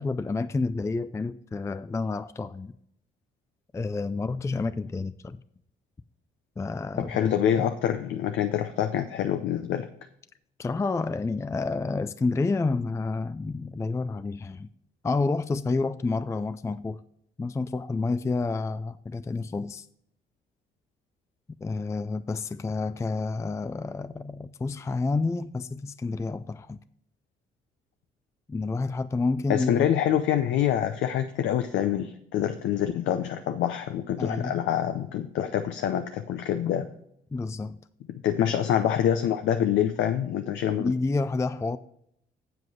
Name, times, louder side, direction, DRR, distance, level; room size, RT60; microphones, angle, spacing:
voice 1, 0.0-2.7 3.7-5.4 6.6-7.7 10.6-14.7 15.0-17.0 17.4-19.9 21.6-26.8 28.5-29.9 34.2-34.6 37.3-37.8 40.7-41.8, left 3 dB, 15° left, 0.4 m, -29 dB
voice 2, 7.0-9.9 29.5-36.9 38.1-40.9, left 10 dB, 70° left, 0.6 m, -26 dB
7.8 x 7.7 x 4.7 m
supercardioid pair, 55°, 20 cm